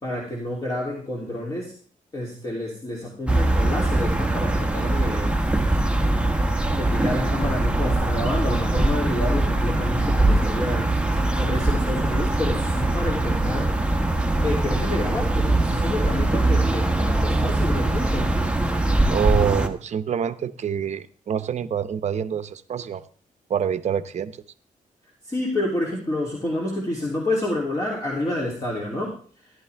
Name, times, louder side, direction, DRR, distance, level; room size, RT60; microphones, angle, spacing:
voice 1, 0.0-1.7 2.1-5.4 6.7-11.0 11.4-13.7 14.4-18.4 25.2-29.5, left 1 dB, 25° left, -3 dB, 2.9 m, -29 dB
sound 1, 3.3-19.7, right 2 dB, 10° right, 1.1 m, -22 dB
voice 2, 19.1-23.0 23.5-24.3, right 8 dB, 55° right, 12 dB, 0.8 m, -26 dB
14.5 x 11.0 x 3.4 m, 0.43 s
wide cardioid pair, 140°, 14 cm